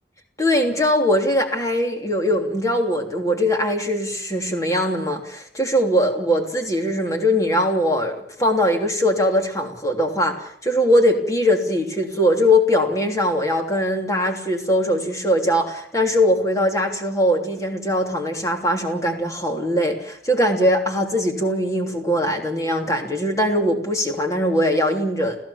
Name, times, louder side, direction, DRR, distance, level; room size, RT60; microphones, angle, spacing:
voice 1, 0.4-25.4, equal, 20° left, 3 dB, 3.1 m, -21 dB
30.0 x 15.5 x 7.1 m, 0.63 s
head